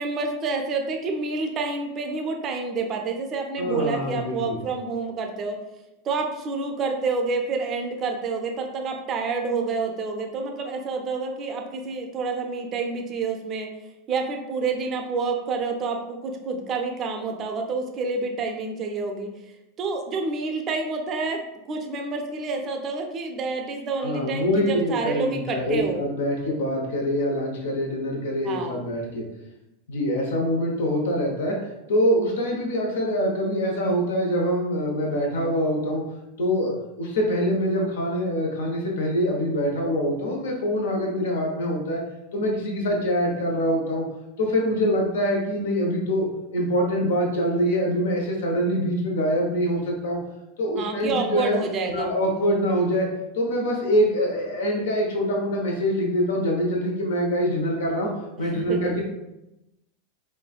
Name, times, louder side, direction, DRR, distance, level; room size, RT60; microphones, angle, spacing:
voice 1, 0.0-5.6 6.0-13.7 14.1-19.3 19.8-26.0 28.4-28.8 50.8-52.1 58.4-58.9, right 4 dB, 35° right, 3 dB, 0.4 m, -28 dB
voice 2, 3.6-4.6 24.0-29.2 29.9-31.6 31.9-36.0 36.4-42.0 42.3-44.0 44.4-46.3 46.5-50.2 50.6-51.6 51.9-53.1 53.3-58.1 58.4-59.0, equal, 70° left, 0 dB, 0.7 m, -24 dB
3.2 x 2.2 x 2.3 m, 0.92 s
hypercardioid pair, 90°, 0 cm